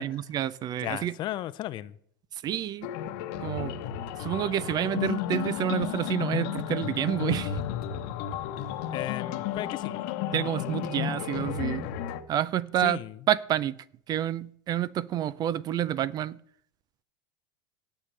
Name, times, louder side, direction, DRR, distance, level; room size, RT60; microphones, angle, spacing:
voice 1, 0.0-1.2 2.4-2.9 3.4-3.7 4.2-7.6 10.3-11.9 12.3-13.0 13.3-13.8 14.1-16.4, right 11 dB, 35° right, 20 dB, 0.4 m, -28 dB
voice 2, 0.8-2.0 8.9-10.0 12.8-13.1, left 14 dB, 40° left, 16 dB, 0.6 m, -35 dB
sound 1, 2.8-12.2, left 10 dB, 60° left, 1.0 m, -32 dB
17.0 x 7.5 x 3.3 m, 0.63 s
supercardioid pair, 110°, 12 cm